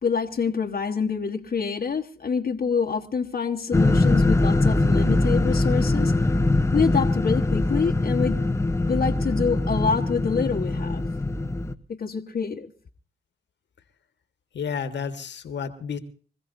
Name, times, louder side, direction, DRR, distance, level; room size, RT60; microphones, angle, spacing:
voice 1, 0.0-6.1 6.7-8.4 8.9-11.1 11.9-12.7, left 5 dB, 50° left, 1.3 m, -26 dB
sound 1, 3.7-11.7, left 2 dB, 15° left, 0.9 m, -22 dB
voice 2, 14.5-16.0, left 6 dB, 65° left, 1.5 m, -31 dB
26.0 x 15.0 x 2.7 m
supercardioid pair, 45°, 20 cm